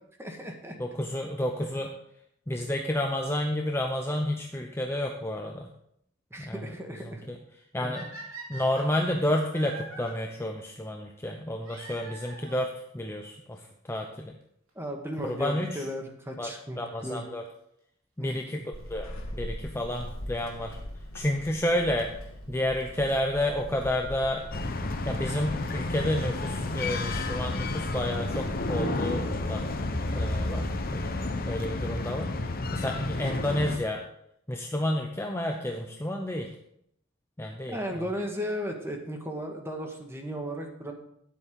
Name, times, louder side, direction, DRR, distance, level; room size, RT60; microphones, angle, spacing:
voice 1, 0.2-0.8 6.3-7.2 7.8-8.1 14.7-17.2 18.2-18.6 37.7-40.9, equal, 10° right, 3 dB, 1.6 m, -35 dB
voice 2, 0.8-1.9 2.5-5.7 6.4-6.6 7.0-7.4 7.7-8.1 8.5-13.6 13.9-14.3 15.2-15.9 16.4-16.5 16.8-17.4 18.2-18.6 18.9-20.8 21.1-22.1 22.5-24.4 25.0-29.6 30.1-31.1 31.4-32.3 32.7-34.0 34.5-36.5 37.4-38.0, left 1 dB, 10° left, 2 dB, 0.7 m, -30 dB
sound 1, 7.9-10.1 11.6-12.7 13.6-13.7 14.4-14.5 14.7-14.8 16.7-16.9 19.7-19.8 20.9-21.0 22.4-22.5 22.8-22.9 23.1-23.2 23.4-23.5 23.7-23.8 23.9-24.0 24.3-24.4, right 2 dB, 80° right, 2.7 m, -44 dB
Walk footsteps / Squeak, 18.7-31.4, equal, 75° left, 1.9 m, -41 dB
sound 2, 24.5-33.8, left 2 dB, 45° left, 1.0 m, -31 dB
12.5 x 9.8 x 3.7 m, 0.72 s
head